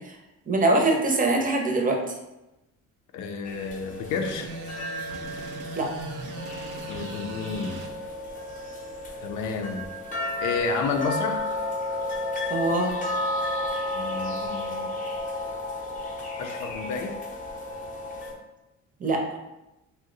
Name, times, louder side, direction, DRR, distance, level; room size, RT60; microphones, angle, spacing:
voice 1, 0.5-2.0 5.8-5.9 12.5-12.9 19.0-19.2, right 2 dB, 25° right, 2 dB, 0.6 m, -23 dB
voice 2, 3.1-4.5 6.9-7.8 9.2-9.9 10.4-11.4 13.9-14.9 16.4-17.2, left 4 dB, 85° left, 4 dB, 0.5 m, -30 dB
sound 1, 3.5-18.3, left 2 dB, 25° left, 0.7 m, -33 dB
sound 2, 4.2-7.9, right 4 dB, 85° right, 0.5 m, -39 dB
2.7 x 2.1 x 3.8 m, 0.96 s
cardioid pair, 90°, 30 cm